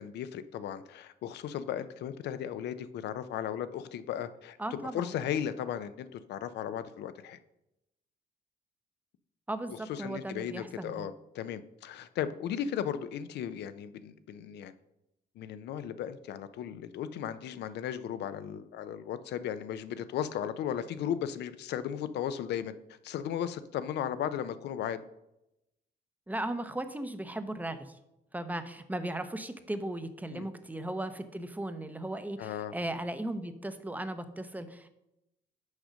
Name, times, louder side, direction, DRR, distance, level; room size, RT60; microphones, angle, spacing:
voice 1, 0.0-7.4 9.9-14.7 15.4-22.7 23.0-25.0 30.3-30.5 32.4-32.7, left 9 dB, 80° left, 13 dB, 0.6 m, -36 dB
voice 2, 4.6-5.2 9.5-11.1 26.3-28.0 28.3-34.9, right 1 dB, 10° right, 10 dB, 0.7 m, -37 dB
6.4 x 5.0 x 6.3 m, 0.89 s
cardioid pair, 100°, 17 cm